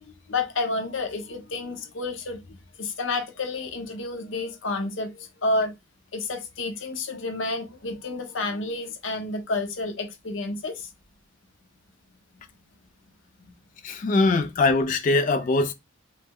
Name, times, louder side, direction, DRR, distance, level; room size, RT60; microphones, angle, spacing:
voice 1, 0.1-5.7 6.1-10.9 13.4-13.5, left 3 dB, 65° left, 0.7 m, -30 dB
voice 2, 13.8-15.7, left 3 dB, 40° left, 0.3 m, -22 dB
3.1 x 2.0 x 3.5 m
head